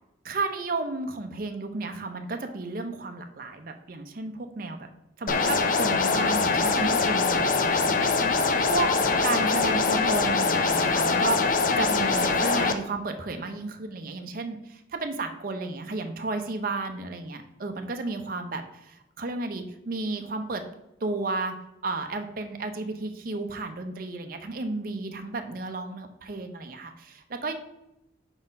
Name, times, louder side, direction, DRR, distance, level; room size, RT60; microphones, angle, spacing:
voice 1, 0.2-4.9 5.2-8.9 9.2-20.6 21.0-21.6 21.8-27.5, right 3 dB, 50° right, 6 dB, 0.6 m, -33 dB
sound 1, 5.3-12.7, left 4 dB, 45° left, 0.5 m, -23 dB
4.9 x 4.2 x 5.3 m, 0.88 s
head